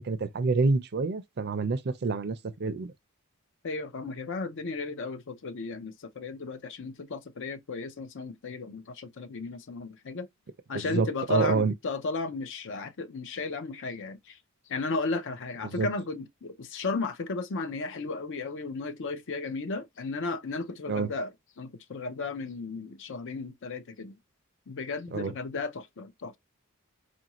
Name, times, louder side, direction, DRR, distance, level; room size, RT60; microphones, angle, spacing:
voice 1, 0.0-2.9 10.7-11.7 15.6-15.9 20.9-21.1 25.1-25.3, right 4 dB, 50° right, 0.5 m, -28 dB
voice 2, 3.6-10.3 10.7-14.4 14.7-21.3 21.6-24.2 24.7-26.4, left 3 dB, 60° left, 0.6 m, -34 dB
4.7 x 2.5 x 2.9 m
head